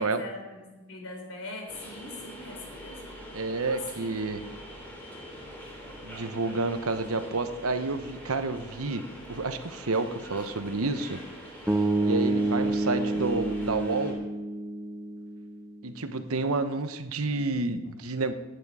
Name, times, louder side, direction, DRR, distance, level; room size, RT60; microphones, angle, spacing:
voice 1, 0.0-3.0 3.6-4.2, left 2 dB, 75° left, 2 dB, 3.7 m, -41 dB
sound 1, 1.7-14.1, equal, 10° left, 3.2 m, -44 dB
voice 2, 3.3-4.4 6.0-9.0 9.3-11.2 12.0-14.2 15.8-18.3, right 3 dB, 75° right, 9 dB, 0.9 m, -29 dB
sound 2, 11.7-15.8, right 2 dB, 10° right, 0.6 m, -28 dB
15.0 x 10.0 x 4.9 m, 1.2 s
head